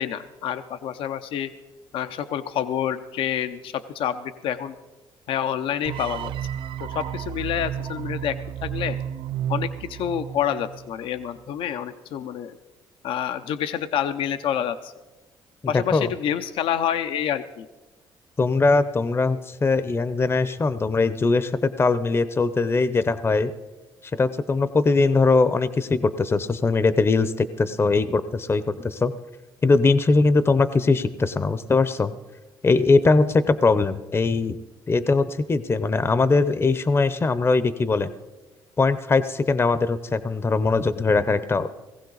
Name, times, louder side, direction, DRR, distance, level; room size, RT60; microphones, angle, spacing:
voice 1, 0.0-1.5 1.9-4.7 5.3-6.3 6.8-9.0 9.5-12.6 13.0-14.9 15.7-17.7, left 9 dB, 75° left, 10 dB, 0.6 m, -28 dB
sound 1, 5.9-11.0, right 10 dB, 70° right, 0.4 m, -32 dB
voice 2, 15.7-16.1 18.4-23.5 24.1-29.1 29.6-32.1 32.6-34.6 34.9-38.1 38.8-41.7, left 3 dB, 25° left, 14 dB, 0.7 m, -21 dB
18.0 x 15.5 x 4.0 m, 1.2 s
supercardioid pair, 80°, 9 cm